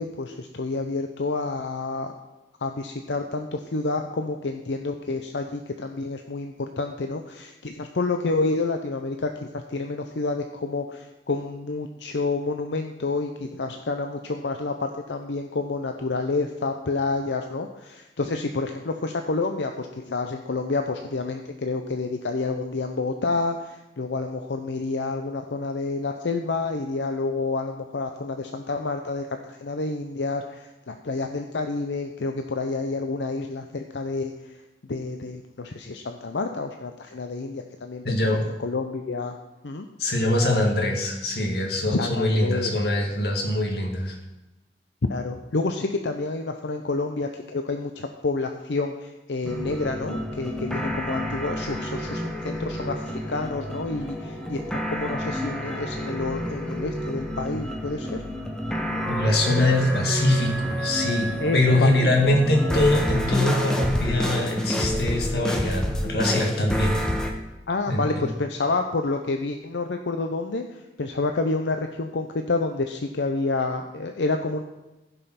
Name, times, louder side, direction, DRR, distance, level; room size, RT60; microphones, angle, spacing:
voice 1, 0.0-2.1 2.6-34.3 34.9-39.4 39.6-39.9 41.9-42.8 45.1-58.2 61.4-61.9 67.7-74.6, left 3 dB, 90° left, 5 dB, 0.7 m, -29 dB
voice 2, 38.0-38.4 40.0-44.2 59.1-67.0 67.9-68.3, left 1 dB, 65° left, 1 dB, 2.1 m, -23 dB
sound 1, 49.4-67.3, equal, 5° left, 1.1 m, -29 dB
15.0 x 5.5 x 5.7 m, 1.0 s
head